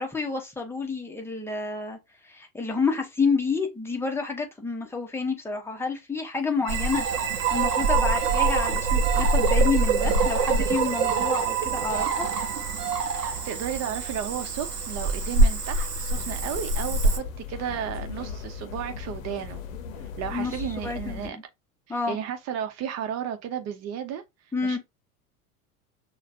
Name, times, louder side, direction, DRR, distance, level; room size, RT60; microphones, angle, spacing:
voice 1, 0.0-2.0 2.2-7.1 7.5-12.3 20.3-21.4 21.9-22.2 24.5-24.8, left 4 dB, 5° left, 1.1 m, -29 dB
sound 1, 6.6-13.4, right 11 dB, 55° right, 0.8 m, -28 dB
Cricket / Frog, 6.7-17.2, right 2 dB, 90° right, 0.9 m, -26 dB
voice 2, 13.1-19.6 20.2-21.4 21.9-24.2 24.6-24.8, right 9 dB, 35° right, 1.0 m, -33 dB
sound 2, 16.1-21.3, left 7 dB, 60° left, 0.8 m, -37 dB
6.3 x 2.5 x 2.7 m
figure-of-eight pair, 80°, 46 cm